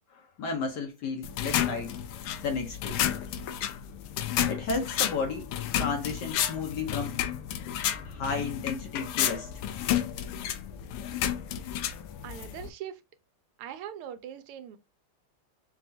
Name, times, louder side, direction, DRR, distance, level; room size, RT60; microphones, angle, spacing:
voice 1, 0.1-2.0 2.4-3.0 4.5-5.5 5.8-7.2 8.0-9.5, left 4 dB, 65° left, 1.1 m, -33 dB
sound 1, 1.2-12.7, left 11 dB, 85° left, 1.5 m, -31 dB
voice 2, 12.2-13.0 13.6-14.8, right 10 dB, 85° right, 1.5 m, -41 dB
5.5 x 2.3 x 2.7 m
omnidirectional pair, 2.4 m